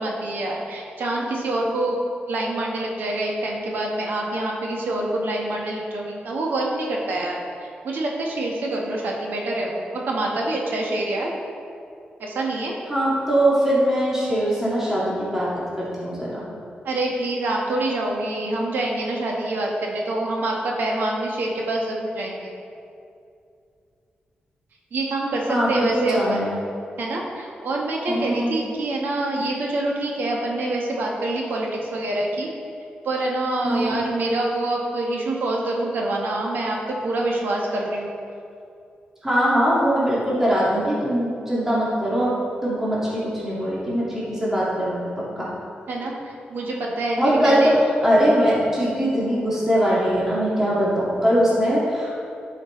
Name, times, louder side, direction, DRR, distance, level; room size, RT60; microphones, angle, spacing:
voice 1, 0.0-2.0 2.3-11.3 12.2-12.7 16.8-22.5 24.9-26.5 27.0-32.5 33.0-38.1 45.9-47.7, right 2 dB, 80° right, -2 dB, 1.3 m, -26 dB
voice 2, 12.9-15.5 15.8-16.5 25.5-26.6 28.1-28.5 33.6-34.0 39.2-42.3 42.6-45.1 45.4-45.5 47.2-47.7 48.0-52.1, equal, 15° right, -8 dB, 2.0 m, -21 dB
11.0 x 5.8 x 3.2 m, 2.5 s
wide cardioid pair, 125°, 3 cm